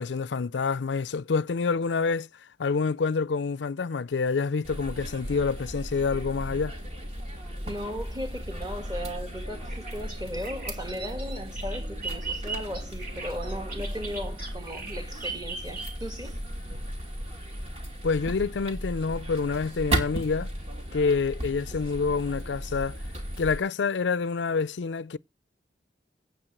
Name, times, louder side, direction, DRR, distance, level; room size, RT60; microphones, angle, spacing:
voice 1, 0.0-2.3 2.6-6.7 18.0-20.5 20.9-23.0 23.4-25.2, left 4 dB, 85° left, 0.5 m, -27 dB
sound 1, 4.6-23.6, equal, 40° right, 2.5 m, -35 dB
voice 2, 7.6-16.4, equal, 25° right, 1.8 m, -37 dB
Bird vocalization bird call bird song, 9.7-16.3, right 4 dB, 55° right, 2.8 m, -38 dB
9.0 x 7.1 x 7.8 m
head